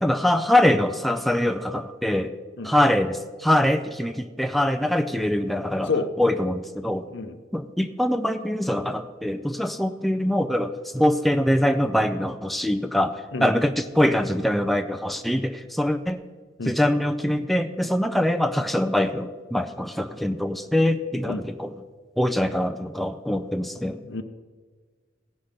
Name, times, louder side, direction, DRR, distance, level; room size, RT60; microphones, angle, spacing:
voice 1, 0.0-2.3 2.6-5.9 6.2-7.1 7.5-16.2 16.7-21.7 22.2-24.0, left 1 dB, ahead, 7 dB, 0.4 m, -23 dB
voice 2, 2.6-2.7 5.9-6.1 7.1-7.4 13.3-13.5 16.6-16.7 21.3-21.4 24.0-24.2, left 4 dB, 70° left, 9 dB, 0.8 m, -28 dB
17.0 x 5.8 x 5.1 m, 1.4 s
head